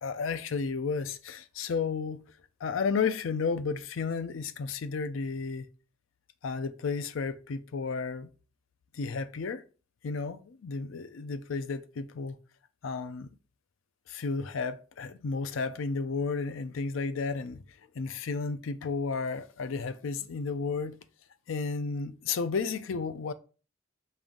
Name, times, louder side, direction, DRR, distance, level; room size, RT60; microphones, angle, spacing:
voice 1, 0.0-2.2 2.6-5.7 6.4-8.3 8.9-9.6 10.0-12.4 12.8-13.3 14.1-17.6 17.9-21.0 21.5-23.3, left 4 dB, 80° left, 0.4 m, -32 dB
5.4 x 2.6 x 3.6 m
head